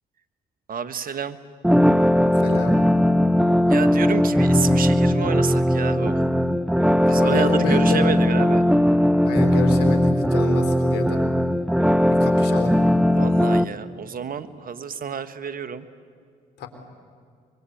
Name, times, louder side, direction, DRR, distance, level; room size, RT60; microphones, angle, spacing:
voice 1, 0.7-1.4 3.7-6.2 7.1-8.6 13.2-15.9, right 7 dB, 55° right, 12 dB, 1.5 m, -29 dB
sound 1, 1.6-13.6, equal, 5° right, 1.0 m, -19 dB
voice 2, 2.3-2.8 7.0-8.0 9.2-11.2 12.1-12.7 16.6-16.7, left 5 dB, 75° left, 7 dB, 3.7 m, -29 dB
25.0 x 23.0 x 8.7 m, 2.2 s
hypercardioid pair, 55°, 18 cm